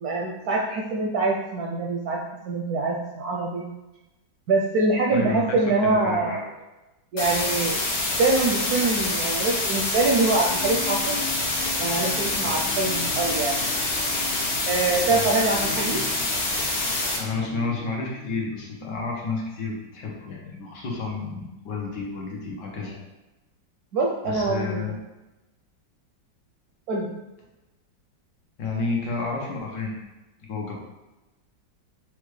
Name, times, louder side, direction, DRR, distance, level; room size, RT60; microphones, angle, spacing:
voice 1, 0.0-2.2 2.5-3.6 4.5-6.4 7.1-7.8 8.2-11.2 11.8-13.6 14.7-16.0 23.9-24.9 26.9-27.1, right 3 dB, 75° right, -1 dB, 0.9 m, -24 dB
voice 2, 5.1-5.6 6.0-6.5 12.4-12.8 15.1-15.4 17.2-23.0 24.2-25.0 28.6-30.0 30.4-30.9, left 3 dB, 70° left, -1 dB, 1.4 m, -31 dB
sound 1, 7.2-17.2, left 2 dB, 85° left, 1.8 m, -26 dB
sound 2, 10.5-18.6, left 3 dB, 45° left, 0.8 m, -40 dB
5.9 x 2.3 x 3.1 m, 1.0 s
omnidirectional pair, 2.0 m